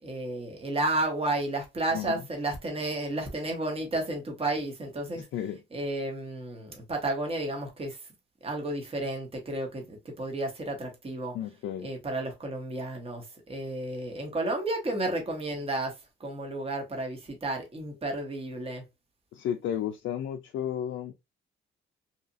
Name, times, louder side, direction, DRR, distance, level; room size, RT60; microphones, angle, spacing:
voice 1, 0.0-5.3 5.7-8.0 8.4-11.3 11.8-18.8, right 2 dB, 30° right, 1.0 m, -32 dB
voice 2, 5.1-5.6 11.3-11.9 19.3-21.1, left 10 dB, 75° left, 0.4 m, -33 dB
2.8 x 2.4 x 2.5 m
cardioid pair, 90°, 20 cm